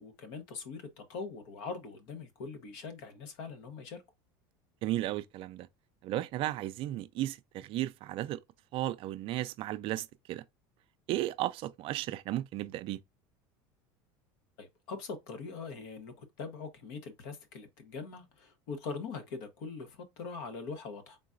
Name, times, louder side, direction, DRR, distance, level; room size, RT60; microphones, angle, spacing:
voice 1, 0.0-4.0 14.6-21.2, left 4 dB, 70° left, 1.1 m, -42 dB
voice 2, 4.8-5.7 6.0-8.4 8.7-10.4 11.1-13.0, right 14 dB, 50° right, 0.4 m, -34 dB
3.8 x 3.8 x 2.6 m
supercardioid pair, 110°, 12 cm